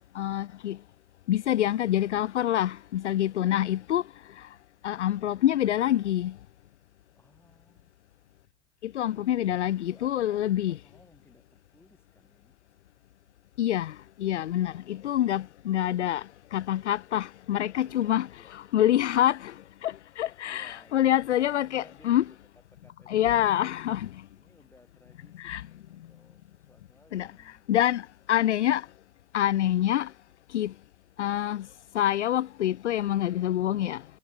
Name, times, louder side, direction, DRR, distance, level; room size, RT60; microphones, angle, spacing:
voice 1, 0.1-0.8 1.3-4.0 4.3-4.5 4.8-6.4 8.8-10.8 13.6-22.2 23.1-24.2 25.4-25.6 27.1-27.3 27.7-28.9 29.3-30.1 30.5-30.7 31.2-31.7 31.9-34.0, left 12 dB, 75° left, 0.5 m, -26 dB
voice 2, 3.3-3.7 7.1-7.9 9.1-9.3 9.7-12.6 17.8-18.5 20.5-22.4 22.7-23.6 24.3-27.7, left 1 dB, 5° left, 7.4 m, -59 dB
figure-of-eight pair, 70°, 35 cm